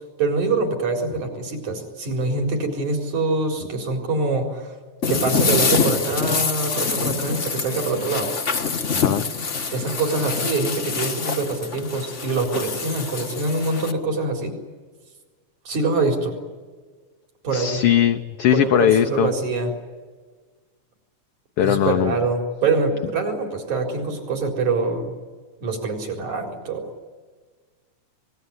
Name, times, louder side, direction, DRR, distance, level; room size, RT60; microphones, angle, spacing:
voice 1, 0.2-4.7 5.1-8.3 9.7-14.5 15.7-16.4 17.4-17.8 18.5-19.7 21.6-25.1 25.6-26.9, right 3 dB, 75° right, 3 dB, 5.6 m, -24 dB
sound 1, 5.0-13.9, left 5 dB, 35° left, 1.2 m, -25 dB
voice 2, 8.9-9.3 17.5-19.3 21.6-22.1, left 10 dB, 65° left, 6 dB, 1.6 m, -19 dB
26.0 x 20.5 x 9.7 m, 1.4 s
omnidirectional pair, 3.4 m